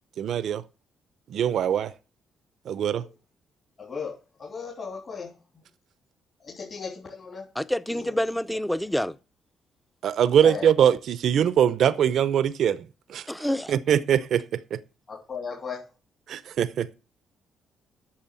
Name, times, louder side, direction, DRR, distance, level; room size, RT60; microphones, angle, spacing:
voice 1, 0.2-0.6 1.3-1.9 2.7-3.0 10.0-13.3 13.7-14.8 16.3-16.9, right 9 dB, 70° right, 0.6 m, -22 dB
voice 2, 3.8-5.3 6.4-7.5 7.9-8.2 10.4-10.7 15.1-15.8, left 5 dB, 45° left, 3.2 m, -36 dB
voice 3, 7.6-9.2 13.3-13.8, left 1 dB, 5° left, 0.6 m, -27 dB
8.9 x 6.6 x 7.5 m
cardioid pair, 90°, 0 cm